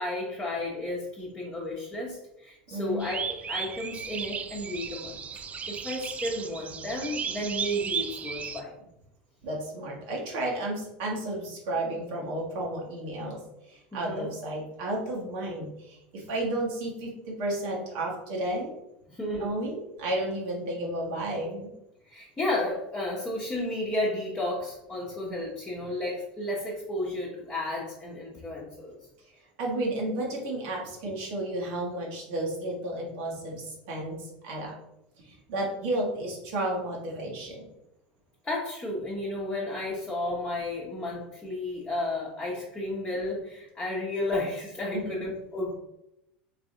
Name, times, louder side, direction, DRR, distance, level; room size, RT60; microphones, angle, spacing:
voice 1, 0.0-5.2 5.7-8.9 13.9-14.3 19.1-19.6 22.0-29.0 38.4-45.8, left 1 dB, 15° left, -5 dB, 1.1 m, -32 dB
voice 2, 2.7-3.1 9.4-18.8 19.4-21.7 29.6-34.7 35.2-37.7 44.9-45.1, right 1 dB, 55° right, -2 dB, 1.2 m, -32 dB
sound 1, 3.0-8.6, right 6 dB, 25° right, 0.4 m, -35 dB
3.9 x 3.4 x 3.7 m, 0.85 s
figure-of-eight pair, 75°, 6 cm